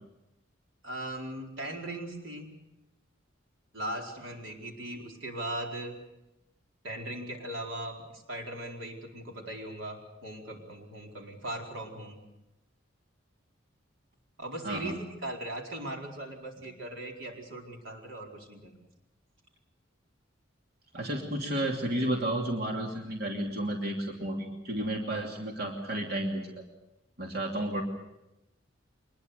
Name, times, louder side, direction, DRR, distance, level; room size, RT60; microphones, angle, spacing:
voice 1, 0.8-2.5 3.7-6.0 6.8-12.2 14.4-18.7, right 1 dB, 90° right, 1 dB, 4.6 m, -39 dB
voice 2, 14.6-15.0 20.9-26.5 27.2-27.8, right 1 dB, 55° right, 0 dB, 2.9 m, -32 dB
24.5 x 21.0 x 6.7 m, 0.93 s
head